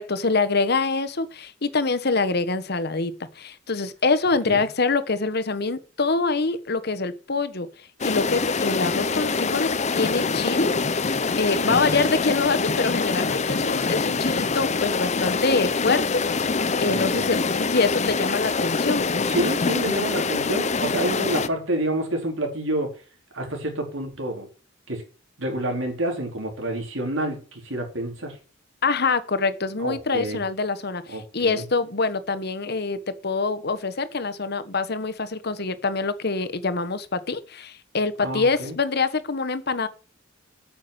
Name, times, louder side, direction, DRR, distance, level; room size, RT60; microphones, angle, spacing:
voice 1, 0.0-7.7 8.0-10.7 11.0-19.1 28.8-39.9, left 3 dB, 55° left, 13 dB, 1.2 m, -25 dB
sound 1, 8.0-21.5, left 4 dB, 35° left, 0.7 m, -25 dB
voice 2, 11.6-12.0 16.9-17.3 19.1-23.0 23.3-24.5 24.9-25.0 25.4-28.4 29.8-30.4 31.1-31.7 38.2-38.8, right 1 dB, 75° right, 3 dB, 4.2 m, -29 dB
8.9 x 7.1 x 8.0 m, 0.35 s
head